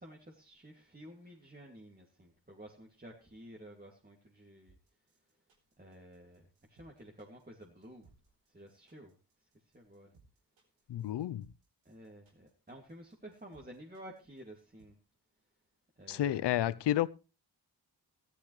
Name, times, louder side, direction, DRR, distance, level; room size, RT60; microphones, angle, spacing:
voice 1, 0.0-4.8 5.8-8.1 8.5-9.2 9.7-10.1 11.8-15.0 16.0-16.8, right 1 dB, 20° right, 2.5 m, -52 dB
sound 1, 4.7-14.9, right 4 dB, 90° right, 3.3 m, -66 dB
voice 2, 10.9-11.5 16.1-17.1, left 12 dB, 65° left, 0.6 m, -31 dB
14.5 x 12.0 x 3.3 m
supercardioid pair, 45°, 45 cm